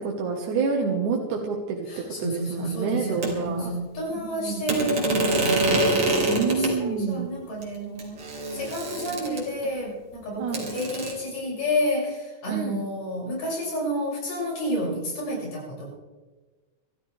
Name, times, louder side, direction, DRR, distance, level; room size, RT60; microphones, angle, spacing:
voice 1, 0.0-3.7 4.2-4.6 6.3-7.3 10.4-10.7 12.5-12.8, right 5 dB, 75° right, 0 dB, 2.8 m, -28 dB
voice 2, 1.9-8.2 8.5-15.9, equal, 80° left, -4 dB, 8.2 m, -30 dB
sound 1, 3.2-3.3 4.7-6.7 7.6-7.7 8.0-9.7 10.5-11.1, right 2 dB, 45° right, 4.2 m, -25 dB
25.5 x 14.0 x 3.4 m, 1.3 s
omnidirectional pair, 3.7 m